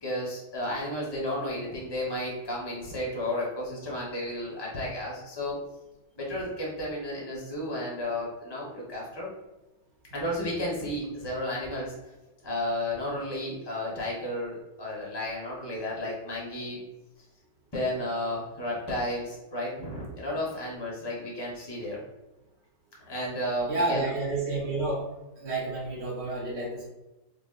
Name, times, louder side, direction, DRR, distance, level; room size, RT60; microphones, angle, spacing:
voice 1, 0.0-5.6 6.2-9.3 10.1-11.9 12.4-16.8 17.7-22.0 23.1-24.1, left 1 dB, 35° left, -4 dB, 0.4 m, -33 dB
voice 2, 23.7-25.1 25.4-26.9, right 2 dB, 70° right, -4 dB, 0.6 m, -30 dB
5.0 x 2.5 x 2.4 m, 1.0 s
omnidirectional pair, 2.2 m